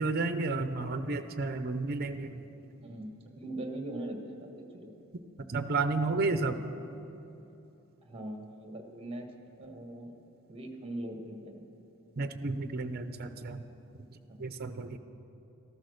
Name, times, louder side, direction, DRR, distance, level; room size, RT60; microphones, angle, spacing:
voice 1, 0.0-2.4 5.5-6.6 12.2-13.6 14.4-15.0, right 3 dB, 45° right, 10 dB, 0.7 m, -31 dB
voice 2, 2.8-4.9 8.0-9.2 9.6-10.1 10.5-11.6 14.3-14.5, right 1 dB, 25° right, 4 dB, 1.5 m, -41 dB
14.0 x 13.0 x 6.6 m, 2.9 s
head